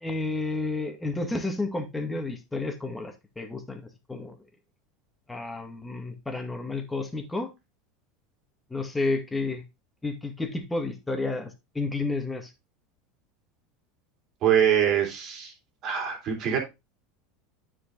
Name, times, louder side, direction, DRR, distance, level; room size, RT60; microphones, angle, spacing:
voice 1, 0.0-4.3 5.3-7.5 8.7-9.6 10.0-12.5, left 3 dB, 10° left, 2.0 m, -31 dB
voice 2, 14.4-15.5 15.8-16.6, right 9 dB, 50° right, 3.4 m, -24 dB
9.3 x 4.9 x 3.9 m
hypercardioid pair, 85°, 0 cm